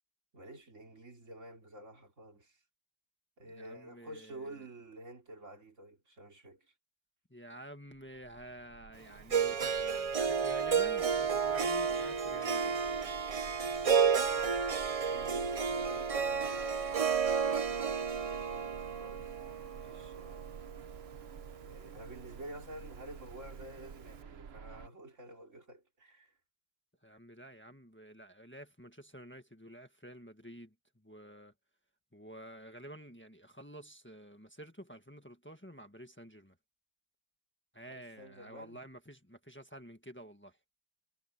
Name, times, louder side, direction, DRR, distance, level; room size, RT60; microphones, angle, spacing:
voice 1, 0.3-2.6 3.4-6.7 15.0-17.4 18.0-19.4 19.7-20.5 21.6-26.3 37.9-38.8, right 1 dB, 85° right, 3.7 m, -50 dB
voice 2, 3.4-4.6 7.3-12.8 27.0-31.5 32.1-36.6 37.7-40.6, right 1 dB, 10° left, 1.6 m, -50 dB
sound 1, 7.9-24.9, right 7 dB, 60° right, 1.1 m, -52 dB
Harp, 9.3-21.4, right 6 dB, 40° right, 0.6 m, -32 dB
omnidirectional pair, 1.3 m